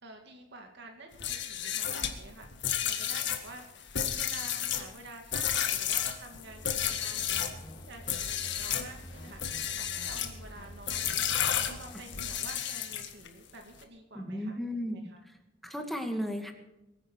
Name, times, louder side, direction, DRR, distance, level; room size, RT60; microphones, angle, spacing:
voice 1, 0.0-9.4 9.8-11.2 11.7-15.2, right 2 dB, 65° right, 3 dB, 2.3 m, -49 dB
sound 1, 1.1-7.6 8.0-8.9 9.3-10.4 10.9-13.3, left 9 dB, 65° left, 1.7 m, -32 dB
sound 2, 6.3-12.5, equal, 25° left, 2.2 m, -48 dB
voice 2, 14.1-15.0 15.6-16.5, equal, ahead, 4 dB, 2.0 m, -34 dB
23.0 x 10.0 x 4.7 m, 0.96 s
head